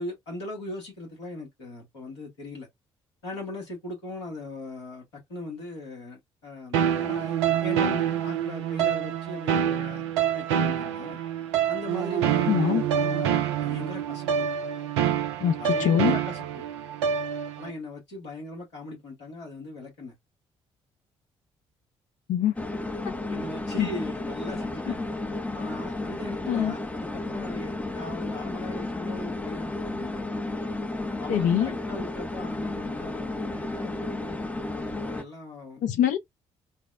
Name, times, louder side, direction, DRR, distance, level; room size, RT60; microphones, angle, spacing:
voice 1, 0.0-2.7 3.2-10.1 10.3-11.2 11.7-14.5 15.6-16.6 17.6-20.1 23.3-25.1 25.5-30.2 31.2-35.8, left 2 dB, 85° left, 1.4 m, -39 dB
sound 1, 6.7-17.7, right 9 dB, 85° right, 0.4 m, -26 dB
voice 2, 12.5-12.8 15.4-16.2 22.3-22.5 23.3-23.4 23.8-23.9 26.5-26.7 31.3-31.7 35.8-36.2, left 10 dB, 65° left, 0.6 m, -24 dB
sound 2, 22.6-35.2, left 2 dB, 10° left, 0.5 m, -33 dB
4.0 x 2.0 x 2.3 m
hypercardioid pair, 45°, 14 cm